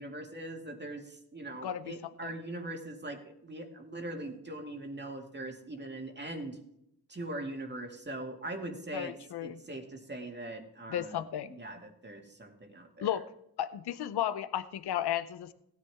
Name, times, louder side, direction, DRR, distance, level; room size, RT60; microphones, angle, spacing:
voice 1, 0.0-6.6 7.1-9.1 9.4-11.2 11.5-13.1, right 1 dB, 25° right, 3 dB, 2.1 m, -41 dB
voice 2, 1.6-1.9 2.2-2.3 8.9-9.6 10.9-11.6 13.0-13.2 13.6-15.5, left 11 dB, 75° left, 13 dB, 0.7 m, -34 dB
17.0 x 9.9 x 3.5 m, 0.78 s
cardioid pair, 90°, 39 cm